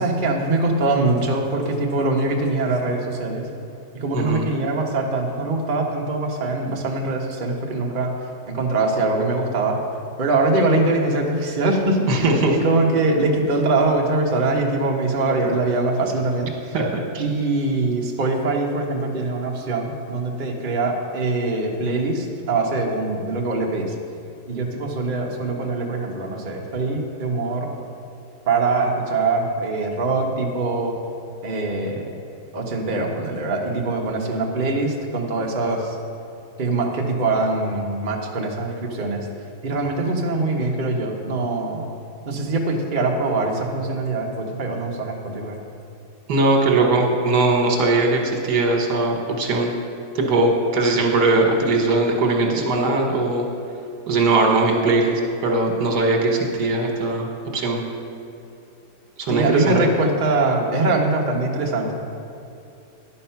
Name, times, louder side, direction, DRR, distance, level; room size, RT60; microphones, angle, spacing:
voice 1, 0.0-3.5 3.9-8.1 8.5-9.8 10.2-16.7 17.2-23.9 24.5-27.7 28.5-30.9 31.4-32.2 32.5-35.9 36.6-39.3 39.6-41.9 42.3-45.6 59.3-61.9, right 2 dB, 35° right, -1 dB, 0.9 m, -23 dB
voice 2, 4.1-4.4 12.1-12.5 16.7-17.2 46.3-49.7 50.1-53.4 54.1-57.8 59.2-59.8, right 2 dB, 75° right, 1 dB, 1.7 m, -20 dB
10.5 x 5.5 x 5.7 m, 2.7 s
omnidirectional pair, 1.8 m